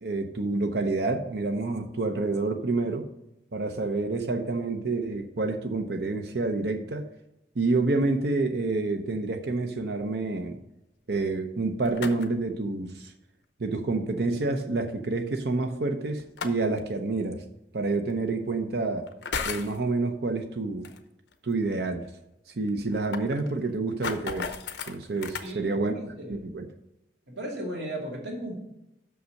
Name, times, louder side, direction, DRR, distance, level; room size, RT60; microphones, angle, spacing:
voice 1, 0.0-3.0 3.5-7.1 7.6-10.6 11.1-13.1 13.6-17.4 17.7-19.0 19.4-20.9 21.4-22.0 22.6-24.5 24.9-25.9 26.3-26.7, right 3 dB, 70° right, 5 dB, 0.7 m, -28 dB
sound 1, 11.6-12.5 14.1-14.2 16.2-16.8 17.9-18.0 19.1-19.8 20.8-21.0 21.3-21.4 21.8-21.9 22.1-22.2 22.7-25.5, left 5 dB, 85° left, 0.8 m, -35 dB
voice 2, 25.4-26.4 27.3-28.6, right 1 dB, 90° right, -1 dB, 2.4 m, -36 dB
6.5 x 5.6 x 6.3 m, 0.89 s
head